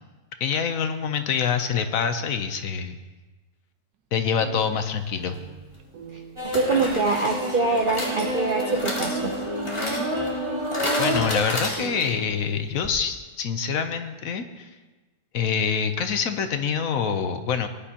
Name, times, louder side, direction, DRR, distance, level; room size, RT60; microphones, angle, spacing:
voice 1, 0.4-3.0 4.1-5.4 11.0-14.7 15.3-17.7, left 6 dB, 65° left, 8 dB, 1.0 m, -26 dB
sound 1, 4.4-10.2 11.0-11.1 11.5-12.2, right 7 dB, 75° right, 1.3 m, -40 dB
sound 2, 5.2-5.4 6.5-12.3 12.5-12.6 12.8-12.9, left 1 dB, 20° left, 2.1 m, -32 dB
voice 2, 6.1-9.3, right 3 dB, 55° right, 3 dB, 0.6 m, -25 dB
sound 3, 6.4-11.3, equal, 15° right, 1.9 m, -29 dB
18.0 x 10.5 x 2.8 m, 1.2 s
omnidirectional pair, 1.7 m